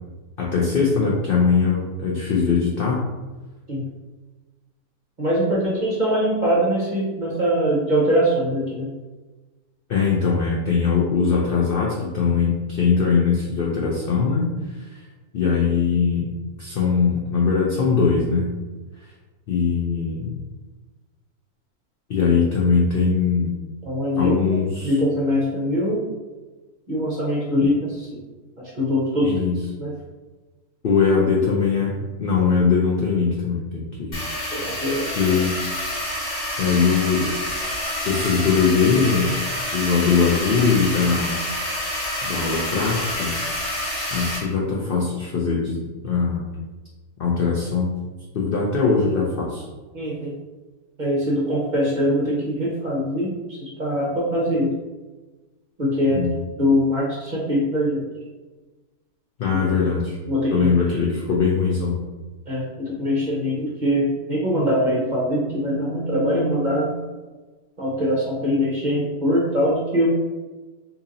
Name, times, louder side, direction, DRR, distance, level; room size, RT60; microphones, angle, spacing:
voice 1, 0.4-3.0 9.9-14.5 14.8-14.9 15.3-16.3 16.6-18.5 19.5-20.3 22.1-23.5 24.1-25.0 27.6-27.7 29.2-29.6 30.8-31.9 32.2-34.2 35.1-35.6 36.6-37.3 38.1-39.3 39.7-41.3 42.2-43.3 44.1-46.6 47.2-47.9 48.3-49.6 56.1-56.4 59.4-60.1 60.5-61.9, left 5 dB, 75° left, -4 dB, 0.5 m, -21 dB
voice 2, 5.2-8.9 23.9-24.4 24.8-26.0 26.9-28.2 28.7-29.5 29.8-29.9 34.5-35.1 49.9-50.3 51.0-53.3 53.6-54.7 55.8-56.3 56.6-58.0 59.5-59.6 60.3-60.7 62.5-66.9 67.8-70.1, equal, 40° right, -5 dB, 0.7 m, -22 dB
sound 1, 34.1-44.4, left 1 dB, 45° left, 1.1 m, -28 dB
2.9 x 2.8 x 3.7 m, 1.2 s
omnidirectional pair, 1.6 m